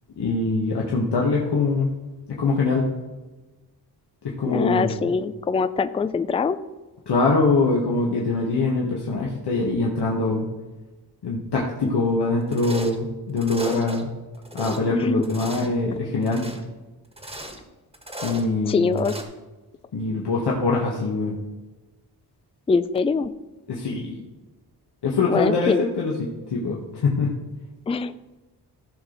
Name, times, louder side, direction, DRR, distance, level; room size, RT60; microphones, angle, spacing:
voice 1, 0.2-1.9 2.3-2.9 4.2-5.0 7.1-10.5 11.2-14.1 14.5-16.5 18.2-19.0 19.9-21.4 23.7-24.2 25.0-27.3, left 3 dB, 75° left, -3 dB, 1.5 m, -23 dB
voice 2, 4.5-6.6 14.9-15.2 18.7-19.1 22.7-23.3 25.3-25.8 27.9-28.1, left 4 dB, 15° left, 13 dB, 0.3 m, -23 dB
sound 1, 12.5-13.0 13.4-14.0 14.3-14.8 15.2-15.7 16.2-16.6 17.1-17.6 17.9-18.5 19.0-19.2, right 1 dB, 15° right, 1.5 m, -35 dB
15.0 x 6.0 x 4.0 m, 1.2 s
wide cardioid pair, 110°, 41 cm